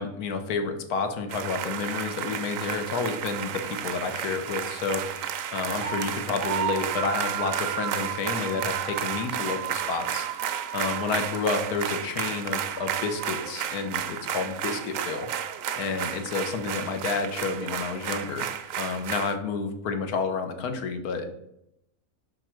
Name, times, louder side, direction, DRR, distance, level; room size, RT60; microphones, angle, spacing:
voice 1, 0.0-15.3 15.8-18.5 18.8-21.3, left 4 dB, 85° left, 7 dB, 1.3 m, -30 dB
sound 1, 1.3-19.4, right 9 dB, 70° right, 0.9 m, -32 dB
6.0 x 4.5 x 4.4 m, 0.81 s
omnidirectional pair, 1.6 m